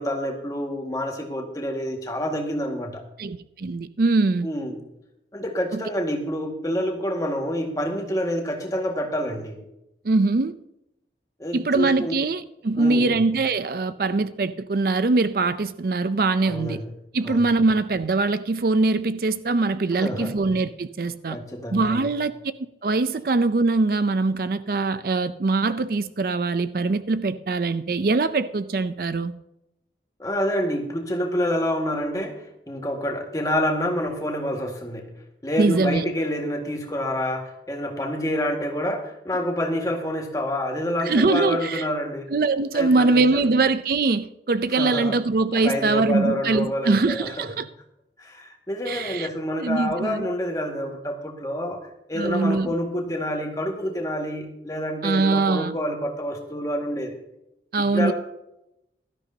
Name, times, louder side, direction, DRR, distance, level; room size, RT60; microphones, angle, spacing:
voice 1, 0.0-3.0 4.4-4.8 5.3-9.6 11.4-12.2 12.8-13.3 16.4-16.9 17.2-17.5 19.9-20.5 21.3-22.1 30.2-35.1 35.4-42.3 42.7-43.5 44.7-45.2 45.5-47.6 48.2-57.2 57.9-58.1, equal, 20° left, 1.8 m, -28 dB
voice 2, 3.2-4.5 5.7-5.8 10.0-10.5 11.5-16.8 17.1-21.4 21.7-22.3 22.8-29.3 35.6-36.0 41.1-41.8 42.3-47.7 48.9-49.3 49.6-50.3 52.2-52.7 55.0-55.7 57.7-58.1, right 3 dB, 55° right, 0.5 m, -22 dB
16.5 x 13.0 x 2.8 m
head